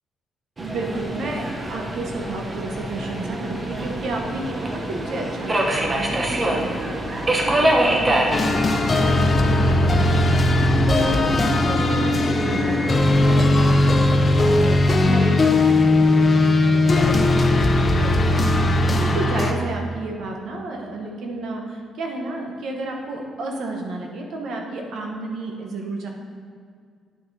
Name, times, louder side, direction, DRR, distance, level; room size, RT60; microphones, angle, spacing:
Subway metro underground, 0.6-12.9, right 1 dB, 30° right, 0.9 m, -26 dB
voice 1, 0.6-10.4 10.9-18.4 18.7-26.1, right 2 dB, 70° right, 1 dB, 1.1 m, -31 dB
sound 1, 8.3-19.5, left 2 dB, 35° left, 0.6 m, -18 dB
9.8 x 5.8 x 2.8 m, 2.1 s
cardioid pair, 90°, 0 cm